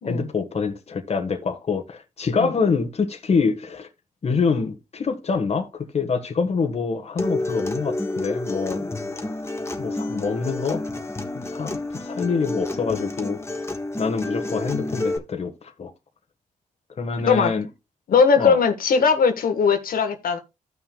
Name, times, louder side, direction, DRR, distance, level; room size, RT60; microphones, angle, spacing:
voice 1, 0.0-3.9 4.2-8.9 9.8-10.8 11.3-13.6 14.0-15.9 17.0-17.7 18.4-18.6, left 5 dB, 45° left, 1.4 m, -26 dB
Acoustic guitar, 7.2-15.2, left 2 dB, 20° left, 1.5 m, -29 dB
voice 2, 18.1-20.4, left 5 dB, 75° left, 1.5 m, -19 dB
15.0 x 5.9 x 2.3 m
cardioid pair, 80°, 15 cm